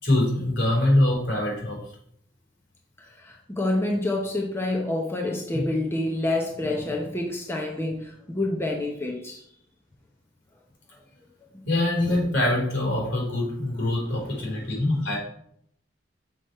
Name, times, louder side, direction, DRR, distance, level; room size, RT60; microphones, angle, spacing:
voice 1, 0.0-1.8 5.5-5.6 11.7-15.2, left 1 dB, 70° left, -2 dB, 3.6 m, -24 dB
voice 2, 3.0-9.4 10.9-11.0 11.5-11.7 14.1-14.6 15.0-15.2, left 2 dB, 15° left, 0 dB, 0.9 m, -28 dB
6.4 x 6.0 x 4.7 m, 0.68 s
head